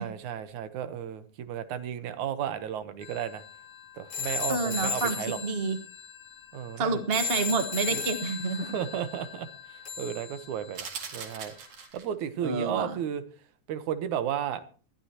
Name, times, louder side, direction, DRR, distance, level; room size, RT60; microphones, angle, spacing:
voice 1, 0.0-3.4 4.0-5.4 6.5-7.0 7.9-8.0 8.6-11.5 11.9-13.2 13.7-14.6, right 9 dB, 75° right, 12 dB, 2.5 m, -33 dB
sound 1, 3.0-11.1, left 6 dB, 45° left, 2.7 m, -36 dB
voice 2, 4.5-5.2 5.4-5.8 6.8-8.8 12.4-12.9, right 4 dB, 40° right, 9 dB, 0.8 m, -28 dB
sound 2, 10.7-12.2, right 6 dB, 60° right, 3.2 m, -40 dB
21.5 x 12.5 x 2.9 m, 0.38 s
omnidirectional pair, 3.5 m